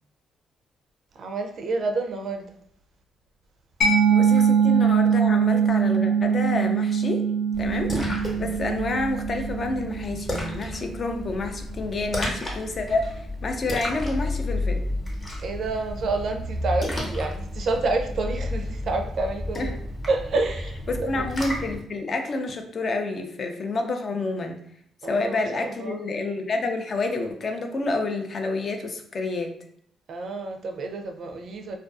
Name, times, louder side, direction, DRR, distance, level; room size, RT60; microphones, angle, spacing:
voice 1, 1.2-2.6 8.3-8.6 15.4-19.8 20.1-21.2 25.0-26.0 30.1-31.8, right 3 dB, 60° right, 5 dB, 0.4 m, -29 dB
Mallet percussion, 3.8-11.2, right 6 dB, 60° left, 0.8 m, -23 dB
voice 2, 4.1-7.2 7.6-14.8 19.6-19.7 20.9-24.6 25.0-29.5, left 3 dB, 45° left, 5 dB, 0.4 m, -29 dB
Splash splatter, 7.5-21.8, left 1 dB, 25° left, 0.8 m, -32 dB
2.4 x 2.3 x 2.3 m, 0.69 s
cardioid pair, 90°, 0 cm